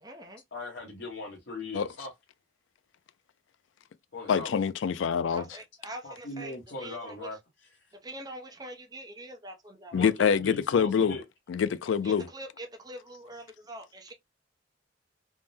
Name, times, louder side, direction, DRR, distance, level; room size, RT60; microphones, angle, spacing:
voice 1, 0.0-0.4 5.3-7.3 8.0-10.0 12.0-14.1, right 1 dB, 20° right, 0.6 m, -44 dB
voice 2, 0.5-2.1 4.1-4.5 6.0-7.4 9.9-11.2, left 2 dB, 65° left, 1.0 m, -39 dB
voice 3, 4.3-5.6 9.9-11.2 11.5-12.3, left 7 dB, 80° left, 0.3 m, -25 dB
3.6 x 2.1 x 2.6 m
head